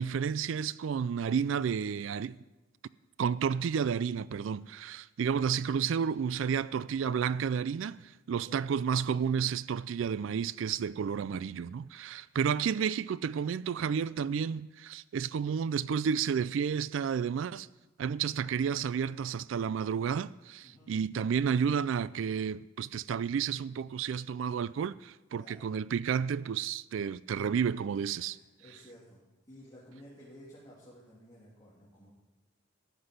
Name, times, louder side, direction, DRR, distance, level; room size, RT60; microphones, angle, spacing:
voice 1, 0.0-2.4 3.2-17.7 18.0-28.4, right 7 dB, 70° right, 0.3 m, -31 dB
voice 2, 8.3-8.7 20.6-21.0 25.3-25.7 28.3-29.2 29.5-32.1, equal, 20° left, 3.0 m, -54 dB
14.0 x 6.0 x 9.8 m
head